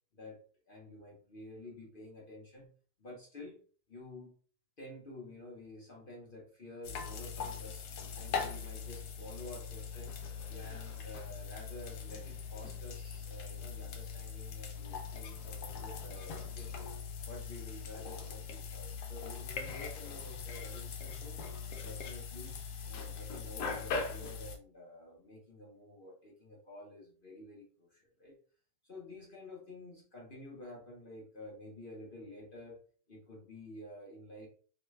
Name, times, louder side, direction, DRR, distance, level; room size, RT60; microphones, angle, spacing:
voice 1, 0.7-2.7 3.0-3.6 3.9-4.3 4.8-7.8 8.1-10.2 10.5-16.9 17.2-21.4 21.8-22.6 22.8-28.3 28.8-32.8 33.1-34.5, left 1 dB, 40° left, -3 dB, 0.8 m, -50 dB
sound 1, 6.8-24.6, left 5 dB, 75° left, 1.1 m, -41 dB
3.2 x 2.2 x 3.2 m, 0.42 s
omnidirectional pair, 1.8 m